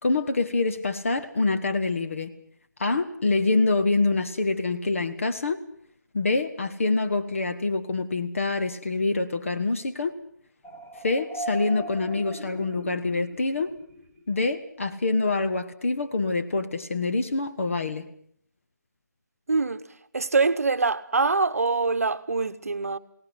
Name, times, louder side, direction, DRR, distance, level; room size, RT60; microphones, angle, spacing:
voice 1, 0.0-2.3 2.8-5.6 6.1-10.2 11.0-13.7 14.3-18.0, left 3 dB, 45° left, 1.2 m, -26 dB
sound 1, 10.6-14.4, right 1 dB, 10° left, 1.7 m, -39 dB
voice 2, 19.5-19.8 20.1-23.0, right 4 dB, 50° right, 1.0 m, -24 dB
21.5 x 18.0 x 8.0 m
figure-of-eight pair, 155°, 10 cm